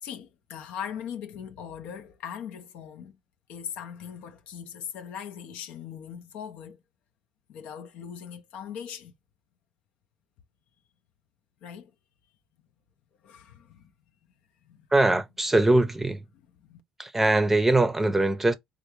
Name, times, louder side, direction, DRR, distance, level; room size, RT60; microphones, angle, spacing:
voice 1, 0.0-3.2 3.5-6.8 7.5-9.1 11.6-11.9 13.2-13.9 14.6-14.9 16.6-16.8, left 8 dB, 70° left, 0.5 m, -40 dB
voice 2, 14.9-16.2 17.0-18.5, right 2 dB, 15° right, 0.6 m, -22 dB
3.3 x 2.5 x 2.9 m
supercardioid pair, 80°, 2 cm